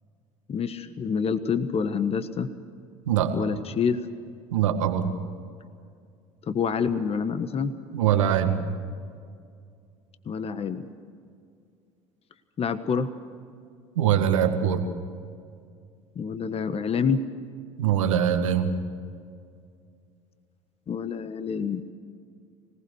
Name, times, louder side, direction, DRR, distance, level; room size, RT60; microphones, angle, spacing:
voice 1, 0.5-2.5 3.3-4.0 6.5-7.7 10.2-10.9 12.6-13.1 16.1-17.2 20.9-21.8, left 6 dB, 40° left, 10 dB, 1.4 m, -27 dB
voice 2, 4.5-5.1 7.9-8.6 14.0-14.9 17.8-18.7, right 9 dB, 85° right, 6 dB, 1.9 m, -22 dB
25.5 x 19.0 x 6.5 m, 2.2 s
hypercardioid pair, 70°, 16 cm